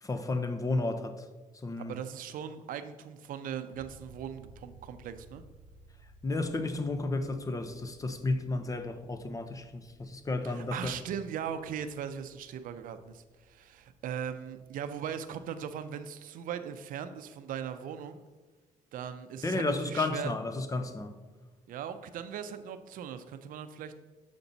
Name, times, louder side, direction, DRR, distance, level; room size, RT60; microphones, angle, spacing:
voice 1, 0.0-1.2 1.6-1.9 6.2-10.9 19.4-21.2, left 2 dB, 25° left, 0.7 m, -32 dB
voice 2, 1.8-5.4 10.4-18.2 18.9-20.3 21.7-24.0, right 8 dB, 75° right, 0.6 m, -39 dB
sound 1, 3.7-15.6, right 2 dB, 85° left, 2.1 m, -58 dB
7.0 x 5.2 x 4.0 m
cardioid pair, 90°, 14 cm